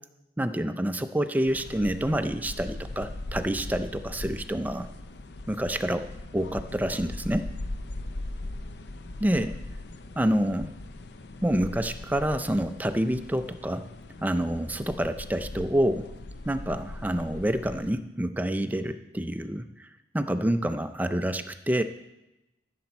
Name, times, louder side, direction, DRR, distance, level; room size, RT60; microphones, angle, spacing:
voice 1, 0.4-4.9 5.5-6.1 6.3-7.5 9.2-9.6 10.2-10.7 11.4-13.8 14.2-16.1 16.5-19.9 20.1-21.8, right 1 dB, 10° right, 9 dB, 0.4 m, -27 dB
sound 1, 1.5-17.9, left 2 dB, 65° left, 0.6 m, -40 dB
14.5 x 6.9 x 4.3 m, 0.95 s
head